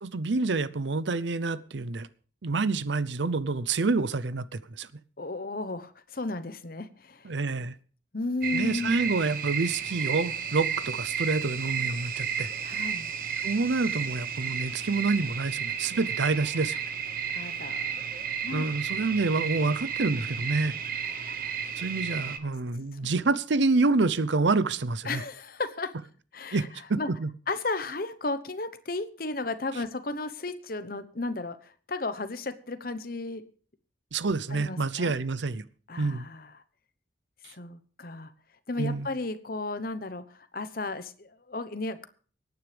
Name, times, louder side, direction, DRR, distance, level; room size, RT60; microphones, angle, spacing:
voice 1, 0.0-2.1 2.4-4.9 7.2-7.7 8.5-12.5 13.4-16.8 18.5-20.8 21.8-25.2 26.5-27.3 34.1-35.6 36.0-36.3 37.4-37.5 38.8-39.1, right 3 dB, 70° right, 0.7 m, -27 dB
voice 2, 5.2-7.4 8.1-9.0 12.6-13.1 17.3-18.0 18.4-18.6 22.9-23.3 25.0-25.9 26.3-26.7 27.0-27.1 27.5-33.4 34.5-35.1 35.9-36.6 37.5-38.3 38.7-42.0, left 3 dB, 50° left, 1.0 m, -34 dB
sound 1, 8.4-22.4, right 7 dB, 50° right, 1.0 m, -33 dB
25.0 x 9.5 x 3.4 m
head